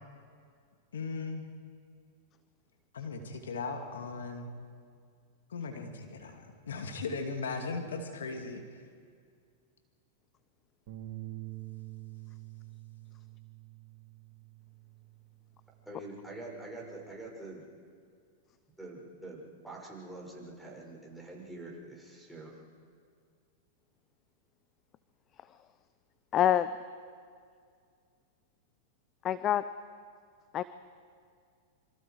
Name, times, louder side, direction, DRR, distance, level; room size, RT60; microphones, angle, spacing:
voice 1, 0.9-1.5 2.9-4.5 5.5-8.6, left 4 dB, 85° left, 5 dB, 2.6 m, -38 dB
Bass guitar, 10.9-15.3 15.7-17.1, right 17 dB, 55° right, 4.3 m, -47 dB
voice 2, 15.9-17.6 18.8-22.5, right 2 dB, ahead, -4 dB, 6.4 m, -45 dB
voice 3, 26.3-26.7 29.2-29.6 30.5-30.6, left 11 dB, 35° left, 14 dB, 0.7 m, -25 dB
27.0 x 26.0 x 4.9 m, 2.2 s
hypercardioid pair, 110°, 0 cm